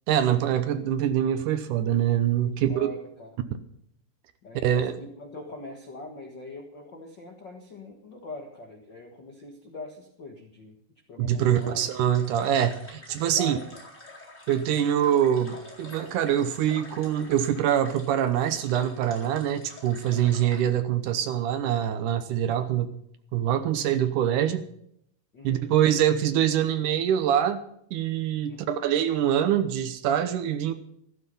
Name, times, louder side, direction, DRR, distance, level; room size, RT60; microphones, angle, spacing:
voice 1, 0.1-2.9 4.5-5.0 11.2-13.6 14.5-23.0 23.3-24.7 25.4-27.7 27.9-30.7, right 10 dB, 75° right, 10 dB, 1.9 m, -24 dB
voice 2, 2.4-3.4 4.4-10.8 11.1-11.9 13.4-13.7 14.7-14.9 25.3-25.6 28.5-28.7, left 2 dB, 80° left, 3 dB, 1.0 m, -43 dB
sound 1, 11.4-20.7, left 1 dB, 20° left, 4.0 m, -47 dB
15.0 x 13.0 x 5.4 m, 0.71 s
omnidirectional pair, 4.8 m